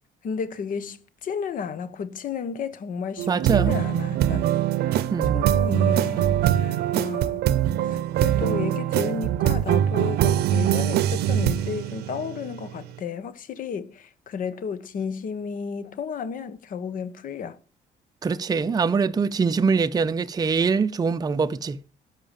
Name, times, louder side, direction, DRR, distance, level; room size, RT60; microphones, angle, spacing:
voice 1, 0.2-4.5 4.9-5.1 5.3-7.5 7.8-17.6, left 6 dB, 55° left, 1.2 m, -33 dB
sound 1, 3.2-12.8, right 11 dB, 75° right, 0.7 m, -23 dB
voice 2, 3.3-3.7 5.1-5.4 18.2-21.8, right 5 dB, 25° right, 0.6 m, -23 dB
12.5 x 5.8 x 7.3 m
cardioid pair, 110°, 17 cm